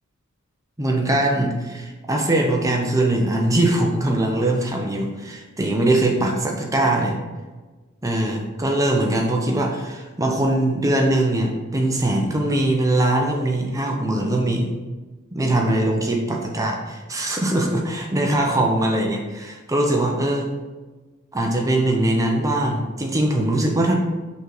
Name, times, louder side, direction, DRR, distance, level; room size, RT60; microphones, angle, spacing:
voice 1, 0.8-7.2 8.0-14.7 15.3-20.5 21.3-24.0, right 1 dB, 15° right, 1 dB, 0.7 m, -21 dB
5.4 x 3.8 x 4.8 m, 1.2 s
head